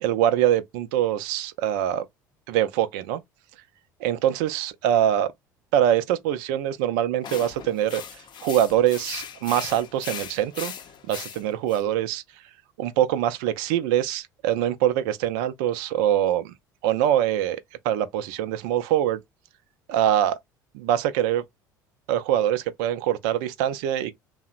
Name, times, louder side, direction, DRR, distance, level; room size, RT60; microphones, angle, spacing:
voice 1, 0.0-2.1 2.5-3.2 4.0-5.3 5.7-8.0 8.4-10.7 11.1-12.2 12.8-16.5 16.8-19.2 19.9-20.4 20.7-21.4 22.1-24.1, right 11 dB, 70° right, 0.4 m, -23 dB
sound 1, 7.2-11.8, left 8 dB, 45° left, 0.5 m, -38 dB
2.7 x 2.0 x 2.4 m
hypercardioid pair, 65°, 11 cm